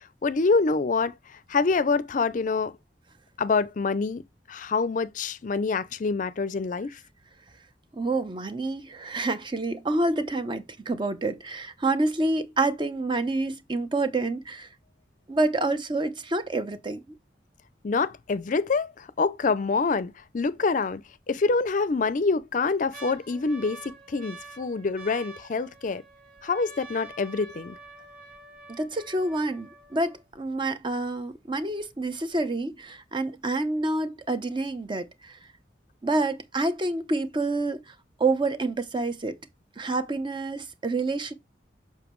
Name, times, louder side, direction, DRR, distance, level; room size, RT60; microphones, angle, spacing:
voice 1, 0.2-1.1 1.5-2.7 3.4-4.2 4.5-7.0 17.8-21.0 21.3-26.0 26.4-27.8, left 4 dB, 45° left, 0.4 m, -26 dB
voice 2, 7.9-14.7 15.3-17.0 28.8-35.4 36.0-37.8 38.2-39.3 39.8-41.3, right 2 dB, 25° right, 0.7 m, -28 dB
sound 1, 21.9-22.0 22.4-30.4 31.1-31.2 31.3-31.8 32.3-32.4, right 3 dB, 55° right, 2.3 m, -47 dB
7.1 x 5.4 x 3.1 m
head